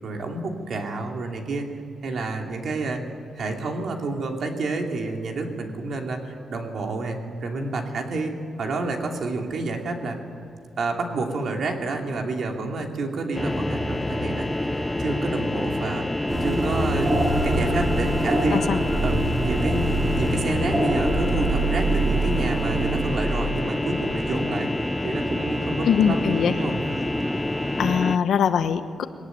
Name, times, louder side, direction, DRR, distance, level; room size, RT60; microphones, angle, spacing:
voice 1, 0.0-1.7 2.0-3.0 3.3-10.2 10.8-16.1 16.4-17.2 17.4-18.6 19.0-24.7 25.0-26.8, right 3 dB, 50° right, 2 dB, 2.9 m, -29 dB
sound 1, 13.3-28.2, left 1 dB, 10° left, 0.6 m, -27 dB
sound 2, 16.3-24.2, right 2 dB, 25° right, 3.7 m, -25 dB
voice 2, 25.8-26.6 27.8-29.1, left 7 dB, 65° left, 9 dB, 1.2 m, -22 dB
21.5 x 19.0 x 9.3 m, 2.5 s
wide cardioid pair, 170°, 0 cm